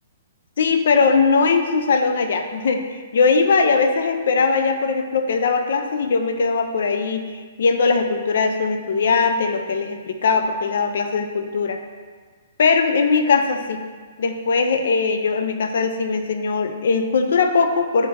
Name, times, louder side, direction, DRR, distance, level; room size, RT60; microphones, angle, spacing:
voice 1, 0.6-7.2 7.6-11.8 12.6-13.8 14.2-18.1, left 4 dB, 70° left, 6 dB, 0.3 m, -20 dB
4.0 x 2.5 x 3.2 m, 1.5 s
hypercardioid pair, 145°, 0 cm